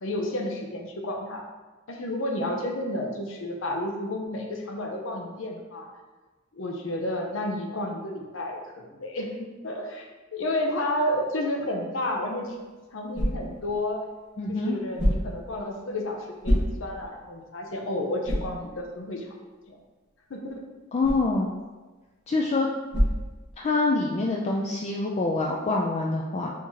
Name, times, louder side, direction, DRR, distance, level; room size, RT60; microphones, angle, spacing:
voice 1, 0.0-1.4 1.9-5.9 6.5-12.6 12.9-14.0 14.5-19.3 19.7-19.8 20.3-20.6, left 1 dB, 75° left, 2 dB, 0.7 m, -31 dB
sound 1, 12.3-24.0, equal, 55° left, 1.4 m, -32 dB
voice 2, 14.4-14.8 20.9-21.5 22.3-22.7 23.6-26.5, left 3 dB, 30° left, -2 dB, 0.3 m, -25 dB
4.5 x 2.8 x 3.6 m, 1.2 s
head